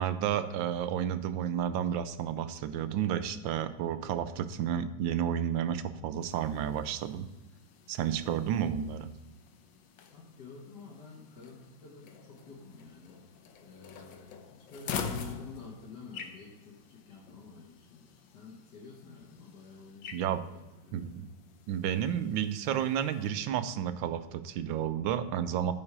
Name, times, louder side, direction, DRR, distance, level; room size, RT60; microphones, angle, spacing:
voice 1, 0.0-7.3 7.9-9.1 20.1-20.4 20.9-21.3 21.7-25.7, right 9 dB, 75° right, 12 dB, 1.3 m, -31 dB
sound 1, 6.2-23.3, left 6 dB, 75° left, 1.5 m, -46 dB
voice 2, 10.1-13.3 13.6-21.0, left 4 dB, 60° left, -4 dB, 1.9 m, -50 dB
9.7 x 5.4 x 4.7 m, 1.1 s
omnidirectional pair, 2.2 m